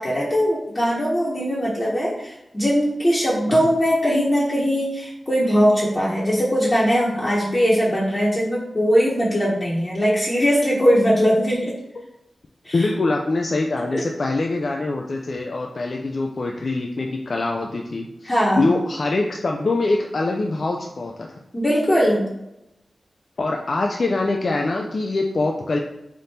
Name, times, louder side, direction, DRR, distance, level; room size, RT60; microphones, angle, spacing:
voice 1, 0.0-11.8 12.6-12.8 13.9-14.0 18.2-18.6 21.5-22.3, equal, 30° left, -7 dB, 1.0 m, -20 dB
voice 2, 12.7-21.4 23.4-25.8, left 2 dB, 60° left, 1 dB, 0.4 m, -24 dB
3.5 x 2.5 x 4.2 m, 0.87 s
cardioid pair, 50°, 0 cm